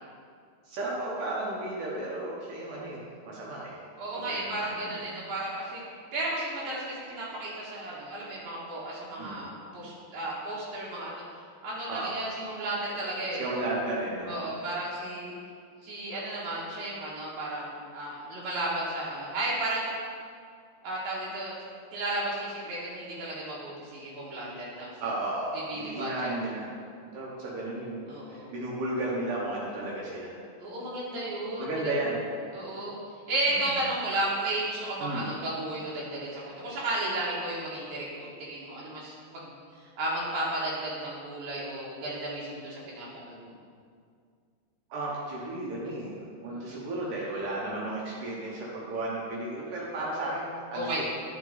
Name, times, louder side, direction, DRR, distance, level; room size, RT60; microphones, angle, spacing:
voice 1, 0.7-3.0 3.3-3.8 4.1-5.0 9.2-9.4 11.9-12.2 13.4-14.6 25.0-26.7 27.1-30.3 31.6-32.2 33.5-33.6 35.0-35.3 44.9-46.1 46.4-51.0, right 2 dB, 70° right, -5 dB, 2.5 m, -34 dB
voice 2, 4.0-11.2 11.6-13.6 14.3-15.3 15.8-19.9 20.8-21.6 21.9-24.9 25.7-26.3 28.1-28.5 30.6-31.9 32.5-33.0 33.3-39.5 40.0-43.6 46.5-46.8 50.7-51.0, right 1 dB, 85° right, -7 dB, 3.0 m, -33 dB
10.5 x 5.1 x 3.9 m, 2.2 s
omnidirectional pair, 4.1 m